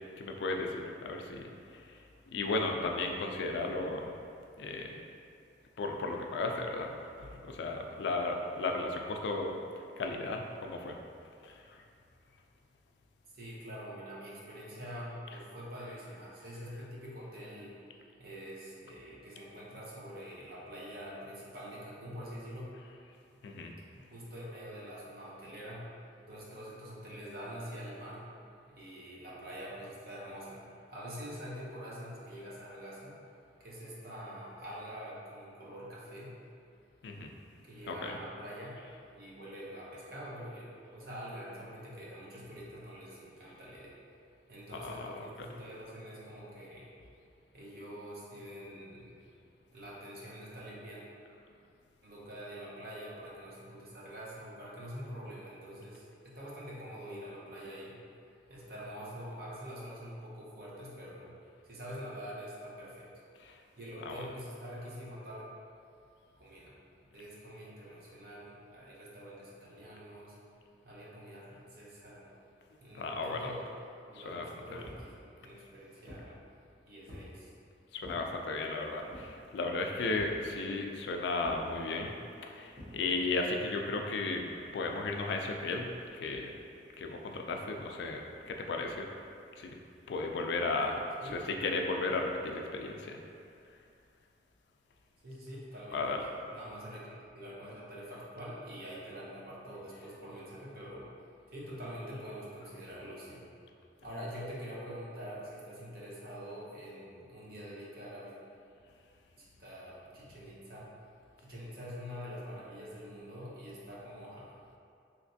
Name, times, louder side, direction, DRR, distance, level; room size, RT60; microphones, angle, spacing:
voice 1, 0.2-1.8 2.3-4.1 4.6-5.0 5.8-9.5 10.0-11.0 11.4-11.8 23.4-23.7 37.0-37.3 37.9-38.1 44.8-45.2 63.5-63.6 64.1-64.2 72.9-73.5 74.2-74.8 77.9-82.1 82.4-84.4 84.7-86.5 87.0-89.1 89.6-89.7 90.1-91.0 91.3-93.2 95.9-96.2, left 3 dB, 75° left, 2 dB, 0.3 m, -35 dB
voice 2, 13.3-17.8 18.2-22.7 23.9-25.9 26.3-28.3 28.7-30.6 30.9-33.2 33.6-36.3 37.6-38.8 39.1-44.0 44.5-46.9 47.5-49.1 49.7-51.0 52.0-58.0 58.5-61.3 61.6-63.1 63.8-65.5 66.3-66.7 67.1-70.4 70.8-72.3 72.8-73.7 74.0-76.4 76.9-77.5 91.2-91.5 95.2-101.1 101.5-103.5 104.0-108.3 109.4-110.9 111.4-114.5, equal, 55° right, -6 dB, 0.7 m, -45 dB
sound 1, 74.8-75.1 75.7-76.3 77.1-77.4 78.0-78.3 79.1-79.4 80.2-80.4 81.4-81.7 82.8-83.0, equal, 30° right, 0.9 m, -48 dB
3.2 x 2.9 x 2.6 m, 2.4 s
head